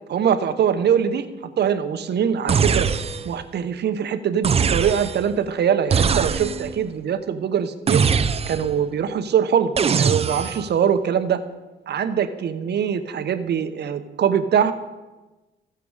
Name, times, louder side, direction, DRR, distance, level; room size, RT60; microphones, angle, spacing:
voice 1, 0.1-1.3 1.6-2.9 3.2-8.0 8.5-9.7 10.0-11.4 11.9-14.7, right 8 dB, 60° right, 10 dB, 0.8 m, -22 dB
sound 1, 2.5-3.4 4.4-5.3 5.9-6.8 7.9-8.8 9.8-10.7, right 6 dB, 30° right, 0.5 m, -21 dB
15.0 x 6.7 x 4.8 m, 1.1 s
cardioid pair, 90°, 20 cm